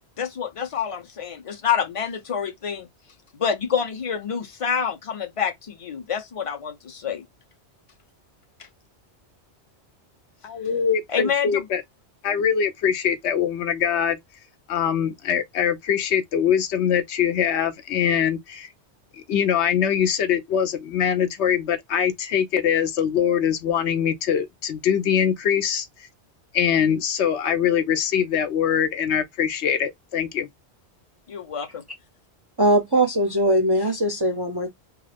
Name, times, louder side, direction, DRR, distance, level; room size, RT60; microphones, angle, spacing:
voice 1, 0.2-2.9 3.3-7.2 11.1-11.7 31.3-31.8, left 7 dB, 35° left, 0.6 m, -27 dB
voice 2, 10.4-11.8 12.2-14.2 14.7-18.7 19.1-25.9 26.5-30.5, left 8 dB, 85° left, 1.0 m, -23 dB
voice 3, 32.6-34.7, right 1 dB, 35° right, 0.4 m, -20 dB
2.4 x 2.3 x 3.3 m
omnidirectional pair, 1.1 m